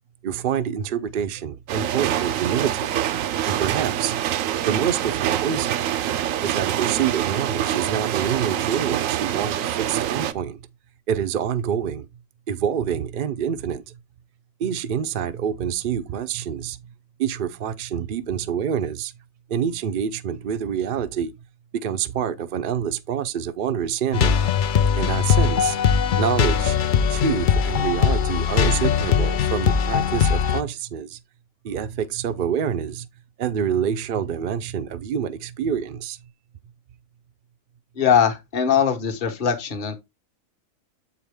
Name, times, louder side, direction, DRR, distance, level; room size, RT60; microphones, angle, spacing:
voice 1, 0.2-2.9 3.4-4.3 4.7-5.9 6.4-10.6 11.1-12.1 12.5-13.8 14.6-16.8 17.2-19.1 19.5-21.3 21.8-24.4 25.0-25.8 26.2-26.8 27.1-31.2 31.6-33.1 33.4-36.2, right 8 dB, 55° right, 0.6 m, -26 dB
sound 1, 1.7-10.3, right 11 dB, 80° right, 1.0 m, -25 dB
sound 2, 24.1-30.6, left 7 dB, 60° left, 0.5 m, -20 dB
voice 2, 38.0-40.0, left 8 dB, 40° left, 1.2 m, -21 dB
7.5 x 4.8 x 3.4 m
omnidirectional pair, 1.4 m